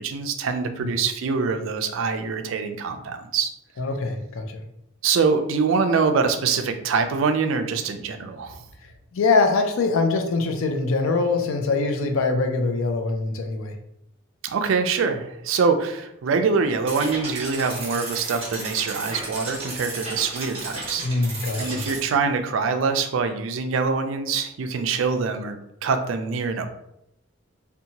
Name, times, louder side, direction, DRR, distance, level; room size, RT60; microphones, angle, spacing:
voice 1, 0.0-3.5 5.0-8.6 14.4-21.3 21.6-26.7, right 5 dB, 75° right, 7 dB, 0.4 m, -24 dB
voice 2, 3.8-4.6 9.1-13.7 21.0-21.8, left 3 dB, 80° left, 5 dB, 0.4 m, -23 dB
sound 1, 16.9-22.0, right 2 dB, 30° right, 0.8 m, -34 dB
2.7 x 2.2 x 2.8 m, 0.79 s
head